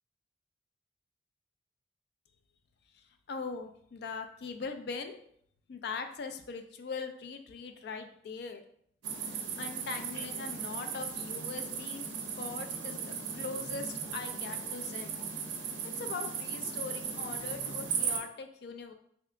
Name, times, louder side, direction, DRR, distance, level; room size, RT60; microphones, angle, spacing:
voice 1, 2.9-5.2 5.7-8.6 9.2-12.1 12.3-15.1 16.0-18.9, left 4 dB, 55° left, 7 dB, 0.3 m, -41 dB
sound 1, 9.0-18.2, right 6 dB, 80° right, 0.5 m, -37 dB
2.7 x 2.4 x 3.3 m, 0.66 s
head